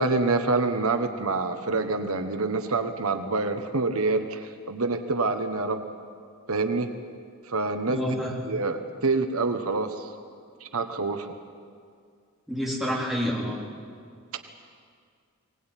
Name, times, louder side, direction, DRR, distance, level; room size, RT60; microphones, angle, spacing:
voice 1, 0.0-5.8 6.5-6.9 7.5-8.1 8.5-10.1 10.6-11.4, right 3 dB, 75° right, 7 dB, 1.3 m, -26 dB
voice 2, 7.9-8.3 12.5-13.6, equal, ahead, -5 dB, 3.7 m, -28 dB
23.0 x 19.0 x 9.1 m, 2.2 s
head